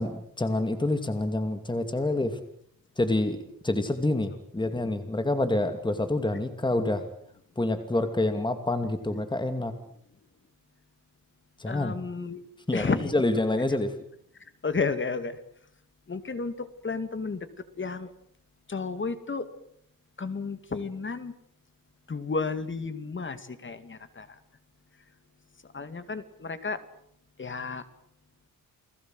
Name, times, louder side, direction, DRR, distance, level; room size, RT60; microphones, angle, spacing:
voice 1, 0.0-2.4 3.0-3.4 3.6-7.0 7.6-9.7 11.6-11.9 12.7-13.9, left 2 dB, 15° left, 8 dB, 2.5 m, -27 dB
voice 2, 11.7-12.4 12.7-13.1 14.6-15.4 16.1-17.5 17.8-18.1 18.7-19.5 20.2-21.3 22.1-24.4 25.7-26.8 27.4-27.9, left 4 dB, 35° left, 11 dB, 2.4 m, -32 dB
30.0 x 19.5 x 7.9 m, 0.68 s
wide cardioid pair, 125°, 35 cm